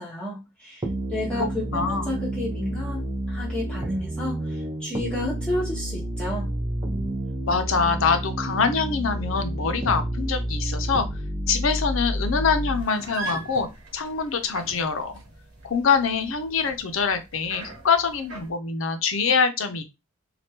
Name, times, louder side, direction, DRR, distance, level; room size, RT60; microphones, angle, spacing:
voice 1, 0.0-6.5, left 1 dB, 5° left, 0.8 m, -31 dB
sound 1, 0.8-12.8, right 1 dB, 20° right, 0.6 m, -29 dB
voice 2, 1.4-2.2 7.5-11.1 11.5-15.1 15.6-19.8, left 5 dB, 80° left, 0.6 m, -24 dB
sound 2, 12.7-18.5, right 3 dB, 55° right, 1.4 m, -40 dB
3.4 x 2.3 x 2.7 m
head